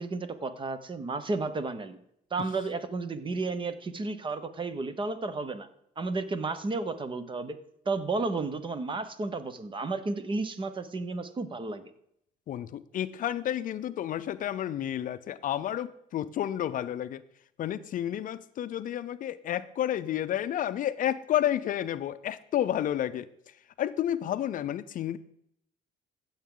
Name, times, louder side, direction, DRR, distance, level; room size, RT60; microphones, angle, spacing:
voice 1, 0.0-2.0 2.3-5.7 6.0-7.6 7.9-11.8, right 3 dB, 30° right, 11 dB, 1.0 m, -32 dB
voice 2, 12.5-17.2 17.6-23.3 23.8-25.2, left 11 dB, 55° left, 13 dB, 0.5 m, -31 dB
15.0 x 7.3 x 3.8 m, 0.74 s
cardioid pair, 110°, 17 cm